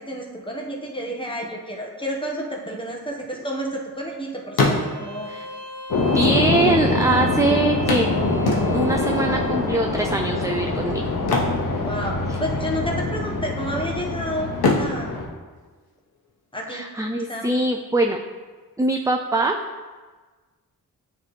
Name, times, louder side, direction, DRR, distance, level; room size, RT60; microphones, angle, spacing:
voice 1, 0.0-5.3 6.6-6.7 11.8-14.5 14.8-15.1 16.5-16.8 17.3-17.5, equal, 15° left, 0 dB, 1.2 m, -30 dB
sound 1, 2.9-4.1 4.4-5.3 6.2-6.3 6.5-6.6 7.9-9.1 11.1-12.4 12.7-13.0 13.5-14.1 14.5-16.3 18.3-18.4 18.8-18.9, left 3 dB, 85° left, 1.1 m, -25 dB
Bowed string instrument, 4.8-9.6, right 2 dB, 85° right, 1.1 m, -38 dB
sound 2, 5.9-15.3, left 2 dB, 60° left, 1.1 m, -24 dB
voice 2, 6.1-11.1 16.7-18.2 18.8-19.6, right 2 dB, 10° right, 3 dB, 0.4 m, -23 dB
9.0 x 3.3 x 3.2 m, 1.3 s
cardioid pair, 65°, 37 cm